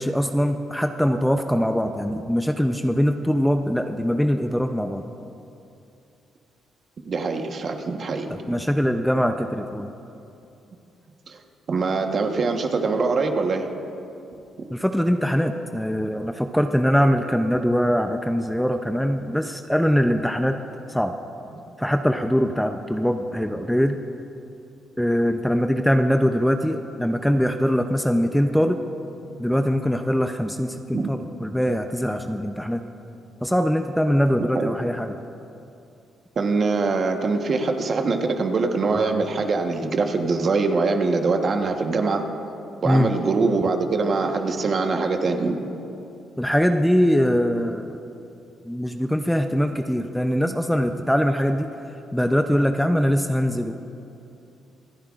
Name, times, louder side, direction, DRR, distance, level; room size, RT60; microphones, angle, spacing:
voice 1, 0.0-5.0 8.3-9.9 14.7-20.6 20.9-21.1 21.8-24.0 25.0-28.8 29.4-32.8 33.4-35.2 42.8-43.1 46.4-48.0 48.6-51.7 52.1-53.7, equal, 5° left, 6 dB, 0.5 m, -22 dB
voice 2, 7.1-8.6 11.3-11.4 11.7-13.7 30.9-31.1 34.4-34.7 36.4-42.2 42.8-45.6, right 4 dB, 50° right, 4 dB, 1.1 m, -23 dB
26.0 x 10.0 x 2.5 m, 2.7 s
cardioid pair, 90°, 0 cm